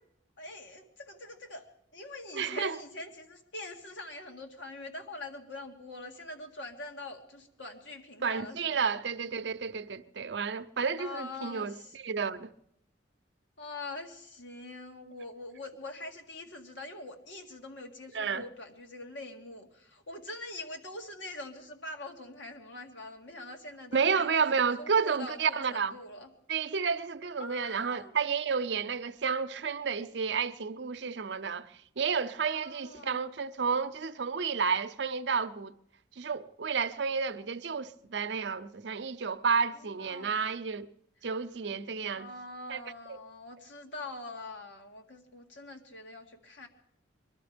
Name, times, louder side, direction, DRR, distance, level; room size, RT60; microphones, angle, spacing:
voice 1, 0.4-1.7 1.9-8.8 11.0-12.0 13.6-24.3 24.8-26.3 27.4-28.1 32.5-33.2 39.7-40.3 41.2-41.3 42.1-46.7, left 2 dB, 80° left, 2.0 m, -44 dB
voice 2, 2.3-2.8 8.2-12.5 18.1-18.4 23.9-25.9 26.5-31.7 32.0-35.7 36.2-40.9 41.2-42.3 42.7-42.8, right 5 dB, 70° right, 0.6 m, -31 dB
22.5 x 12.5 x 5.1 m
head